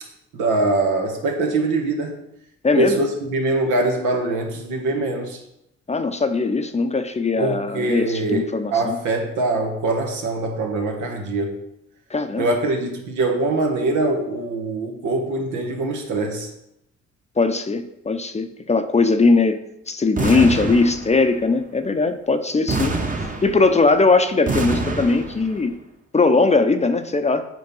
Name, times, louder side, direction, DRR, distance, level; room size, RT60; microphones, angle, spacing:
voice 1, 0.3-2.2 2.8-5.4 7.4-11.5 12.4-16.5 20.3-20.5, right 2 dB, 85° right, 2 dB, 1.6 m, -23 dB
voice 2, 2.6-3.0 5.9-9.0 12.1-12.5 17.4-19.6 19.9-23.0 23.4-25.7 26.1-27.4, left 3 dB, 20° left, 8 dB, 0.6 m, -19 dB
sound 1, 20.2-21.4 22.7-23.9 24.5-25.6, right 3 dB, 25° right, 1.1 m, -26 dB
8.0 x 4.5 x 5.4 m, 0.83 s
cardioid pair, 90°, 30 cm